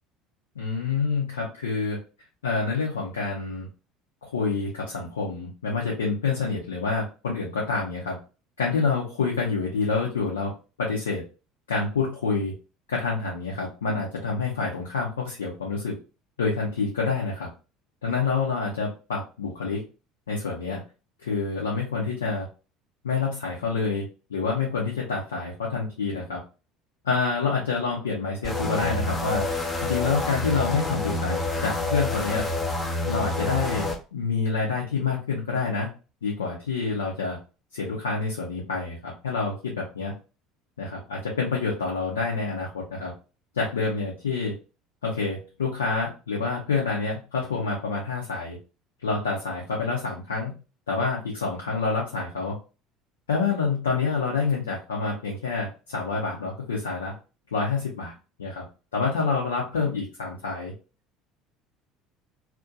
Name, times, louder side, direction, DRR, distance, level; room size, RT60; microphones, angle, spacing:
voice 1, 0.6-2.0 2.4-3.7 4.2-8.2 8.6-10.5 10.8-11.2 11.7-12.5 12.9-15.9 16.4-17.5 18.0-19.8 20.3-20.8 21.2-22.5 23.0-26.4 27.0-29.4 29.8-32.5 33.1-35.9 36.2-37.4 37.7-40.1 40.8-43.1 43.5-44.5 45.0-48.6 49.0-50.5 50.9-52.6 53.3-57.1 57.5-58.1 58.4-58.6 58.9-60.7, left 4 dB, 80° left, -3 dB, 0.6 m, -27 dB
sound 1, 28.4-34.0, left 2 dB, 20° left, 0.6 m, -28 dB
2.5 x 2.1 x 2.5 m, 0.33 s
figure-of-eight pair, 65°, 0 cm